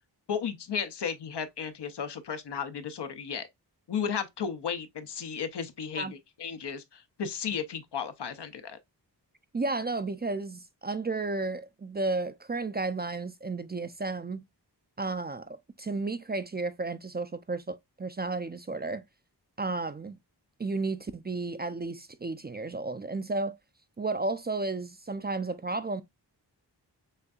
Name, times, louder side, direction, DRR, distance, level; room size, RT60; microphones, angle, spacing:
voice 1, 0.3-3.5 3.9-8.8, left 7 dB, 75° left, 0.7 m, -34 dB
voice 2, 9.5-14.4 15.0-19.0 19.6-20.2 20.6-23.6 24.0-26.0, right 3 dB, 25° right, 0.3 m, -33 dB
6.5 x 2.6 x 2.3 m
wide cardioid pair, 60°, 41 cm